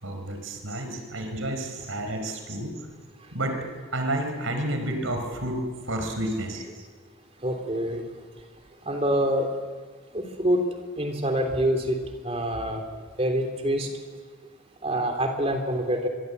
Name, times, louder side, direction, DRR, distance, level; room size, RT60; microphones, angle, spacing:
voice 1, 0.0-2.8 3.3-6.6, right 1 dB, 90° right, 5 dB, 4.7 m, -30 dB
voice 2, 7.4-8.0 8.9-9.5 10.1-10.6 11.0-12.0 12.2-12.8 13.2-13.9 14.8-16.1, right 1 dB, 30° right, 4 dB, 3.3 m, -25 dB
24.5 x 24.0 x 8.2 m, 1.5 s
head